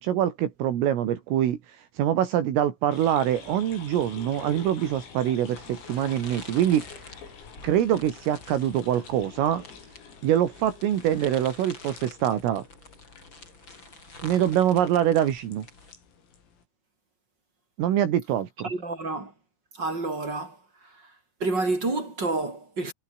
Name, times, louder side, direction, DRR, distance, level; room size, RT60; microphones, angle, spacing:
voice 1, 0.0-6.9 7.6-9.6 10.2-12.6 14.2-15.7 17.8-18.7, right 11 dB, 75° right, 5.1 m, -24 dB
sound 1, 2.9-16.6, left 6 dB, 85° left, 8.9 m, -48 dB
sound 2, 5.4-15.9, left 2 dB, 20° left, 7.3 m, -48 dB
voice 2, 18.6-19.3 19.8-20.6 21.4-22.9, right 3 dB, 20° right, 6.7 m, -28 dB
omnidirectional pair, 6.0 m